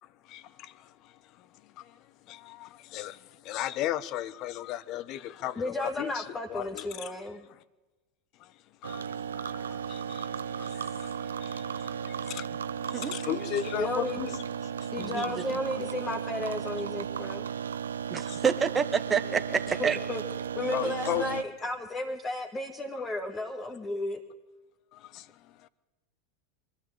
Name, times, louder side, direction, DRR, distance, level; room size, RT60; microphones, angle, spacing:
voice 1, 0.2-1.5 1.8-2.0 2.3-6.2 6.5-7.1 7.5-7.6 8.4-8.5 8.9-9.0 9.4-15.3 18.3-18.4 20.7-21.4 24.9-25.7, left 12 dB, 45° left, 0.8 m, -37 dB
voice 2, 5.6-7.5 13.8-14.2 14.9-17.5 19.8-20.2 20.6-24.2, left 2 dB, 20° left, 1.8 m, -33 dB
sound 1, 8.8-21.4, right 8 dB, 75° right, 0.7 m, -35 dB
voice 3, 15.0-15.4 18.1-20.0, right 6 dB, 20° right, 1.2 m, -28 dB
24.0 x 13.0 x 8.7 m
figure-of-eight pair, 85°, 0 cm